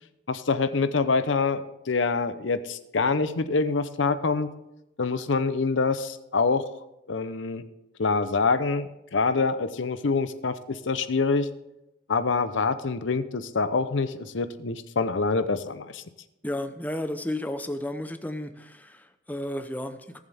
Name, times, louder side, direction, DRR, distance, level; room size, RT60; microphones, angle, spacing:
voice 1, 0.3-4.5 5.0-6.6 7.1-7.6 8.0-11.5 12.1-16.0, left 4 dB, 85° left, 12 dB, 0.7 m, -25 dB
voice 2, 16.4-20.2, left 1 dB, 10° left, 8 dB, 0.7 m, -33 dB
18.5 x 7.3 x 3.5 m, 0.90 s
head